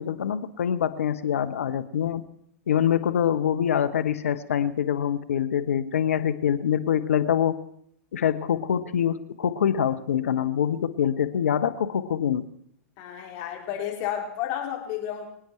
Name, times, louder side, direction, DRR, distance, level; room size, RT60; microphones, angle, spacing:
voice 1, 0.0-2.3 2.7-7.5 8.1-12.4, left 9 dB, 70° left, 10 dB, 1.1 m, -25 dB
voice 2, 13.0-15.3, left 10 dB, 45° left, 0 dB, 3.9 m, -31 dB
25.0 x 9.1 x 4.5 m, 0.70 s
figure-of-eight pair, 105°, 8 cm